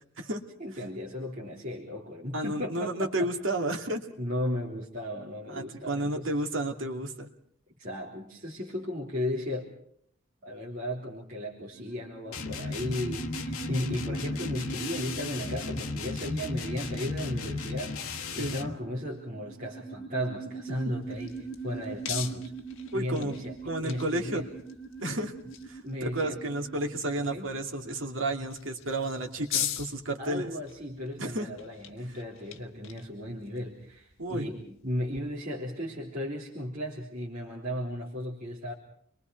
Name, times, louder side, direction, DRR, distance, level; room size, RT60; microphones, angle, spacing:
voice 1, 0.6-3.3 4.2-6.3 7.8-9.7 10.4-22.5 22.9-23.6 23.8-24.5 25.8-26.4 27.2-27.5 30.2-38.7, equal, 40° right, -5 dB, 3.7 m, -35 dB
voice 2, 2.3-4.1 5.5-7.3 18.4-18.6 22.9-23.3 23.6-24.4 25.0-25.3 25.7-30.5 31.2-31.5 34.2-34.5, right 1 dB, 65° right, 2 dB, 2.6 m, -32 dB
sound 1, 11.7-28.1, right 4 dB, ahead, 5.8 m, -43 dB
sound 2, 12.3-18.8, left 3 dB, 90° left, 1.3 m, -35 dB
sound 3, 20.7-35.2, left 9 dB, 70° left, 1.5 m, -42 dB
30.0 x 23.0 x 4.7 m, 0.64 s
head